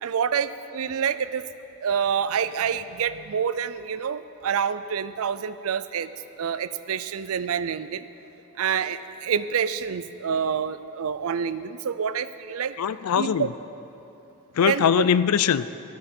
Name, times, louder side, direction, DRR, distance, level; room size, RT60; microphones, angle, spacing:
voice 1, 0.0-1.4 1.8-6.1 6.4-8.0 8.6-12.7 13.2-13.5 14.7-15.1, right 7 dB, 70° right, 13 dB, 0.4 m, -27 dB
voice 2, 12.8-13.5 14.6-15.7, left 8 dB, 85° left, 15 dB, 0.4 m, -21 dB
13.5 x 13.0 x 4.4 m, 2.9 s
head